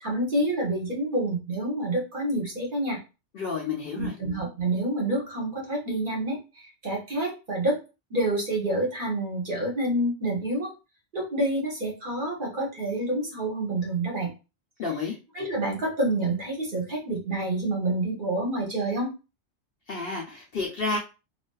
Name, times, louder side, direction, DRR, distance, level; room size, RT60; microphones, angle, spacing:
voice 1, 0.0-3.0 3.9-7.8 8.1-10.7 11.1-14.3 15.3-19.1, right 1 dB, 45° right, -1 dB, 0.8 m, -28 dB
voice 2, 3.3-4.1 14.8-15.2 19.9-21.0, left 4 dB, 60° left, -1 dB, 0.6 m, -30 dB
2.4 x 2.4 x 2.2 m, 0.29 s
omnidirectional pair, 1.4 m